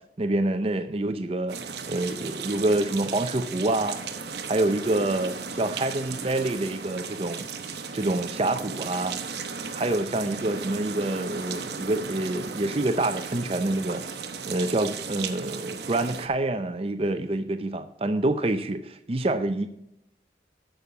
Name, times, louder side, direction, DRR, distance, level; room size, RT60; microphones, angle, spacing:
voice 1, 0.2-1.6 1.9-4.0 4.5-7.5 7.9-9.2 9.7-19.7, right 2 dB, 30° right, 9 dB, 0.5 m, -27 dB
sound 1, 1.5-16.3, right 5 dB, 70° right, 1.0 m, -36 dB
9.0 x 6.8 x 5.8 m, 0.79 s
head